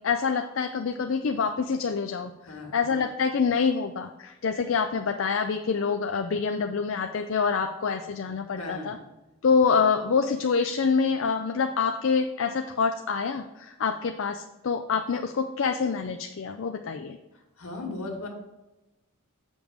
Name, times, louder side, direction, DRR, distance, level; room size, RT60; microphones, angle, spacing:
voice 1, 0.0-2.3 2.7-9.0 9.4-17.2, left 5 dB, 60° left, 6 dB, 0.4 m, -26 dB
voice 2, 2.4-2.7 8.6-9.0 17.3-18.3, left 2 dB, 80° left, 1 dB, 2.0 m, -37 dB
7.5 x 5.3 x 4.9 m, 1.0 s
head